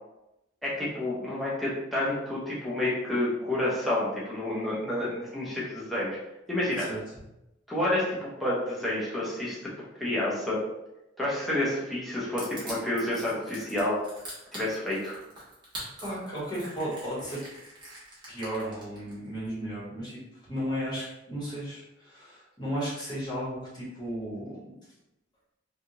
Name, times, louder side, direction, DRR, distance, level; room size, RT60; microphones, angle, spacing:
voice 1, 0.6-6.2 6.5-6.9 7.7-9.6 10.0-10.6 11.2-14.0 14.5-15.2, left 1 dB, ahead, -8 dB, 0.8 m, -29 dB
Crushing, 12.4-19.1, right 1 dB, 25° right, 1.0 m, -43 dB
voice 2, 16.0-17.4 18.3-20.1 20.4-24.5, equal, 20° left, -8 dB, 1.3 m, -34 dB
3.3 x 2.4 x 2.7 m, 0.92 s
head